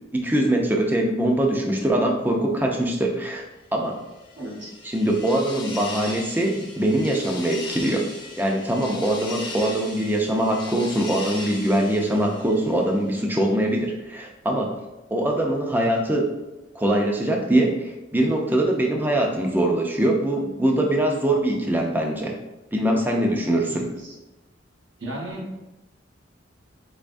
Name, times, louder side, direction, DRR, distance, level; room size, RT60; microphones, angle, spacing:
voice 1, 0.1-3.5 3.7-4.0 4.9-8.1 8.4-14.7 15.1-16.3 16.7-22.4 22.7-23.9, right 1 dB, 10° right, 1 dB, 0.5 m, -22 dB
sound 1, 4.0-13.1, left 2 dB, 25° left, 0.7 m, -38 dB
voice 2, 4.4-4.7 23.7-24.2 25.0-25.7, right 1 dB, 75° right, -2 dB, 1.1 m, -35 dB
4.2 x 3.5 x 2.5 m, 1.0 s
head